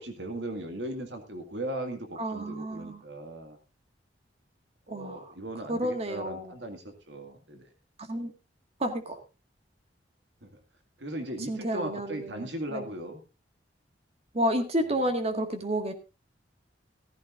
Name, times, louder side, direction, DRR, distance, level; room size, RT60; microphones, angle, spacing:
voice 1, 0.0-3.6 4.9-7.7 10.4-10.6 11.0-13.2 14.9-15.1, right 1 dB, 70° right, 5 dB, 2.1 m, -38 dB
voice 2, 2.2-3.0 4.9-5.3 5.7-6.5 8.0-8.3 8.8-9.2 11.5-12.9 14.3-15.9, right 1 dB, 35° right, 6 dB, 1.9 m, -31 dB
15.0 x 15.0 x 2.6 m, 0.29 s
head